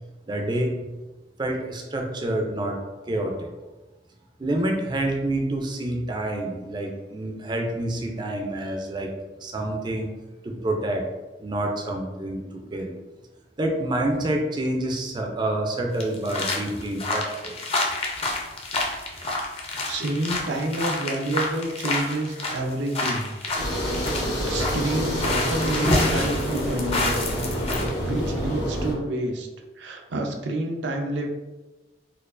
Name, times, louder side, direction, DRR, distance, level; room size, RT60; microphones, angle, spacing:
voice 1, 0.3-0.8 1.4-3.5 4.4-9.1 9.4-10.1 10.4-11.1 11.4-12.9 13.6-17.6, right 1 dB, 25° right, 2 dB, 0.4 m, -28 dB
sound 1, 16.0-27.9 28.3-28.4, left 2 dB, 35° left, 0.5 m, -28 dB
voice 2, 19.9-23.9 24.2-27.3 28.0-29.5 29.8-31.3, right 1 dB, 85° right, 2 dB, 0.5 m, -29 dB
sound 2, 23.6-28.9, equal, 80° left, 1.2 m, -27 dB
4.4 x 2.3 x 2.4 m, 1.1 s
head